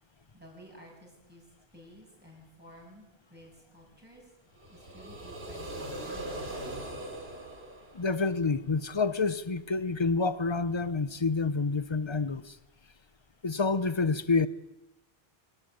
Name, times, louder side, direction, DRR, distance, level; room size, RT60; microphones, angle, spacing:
voice 1, 0.3-1.4 1.7-4.3 4.7-6.5, equal, 10° right, 7.2 m, -53 dB
sound 1, 4.6-8.6, right 1 dB, 80° right, 3.4 m, -40 dB
voice 2, 7.9-12.6 13.4-14.5, left 4 dB, 30° left, 0.8 m, -28 dB
23.5 x 17.0 x 9.3 m
omnidirectional pair, 1.1 m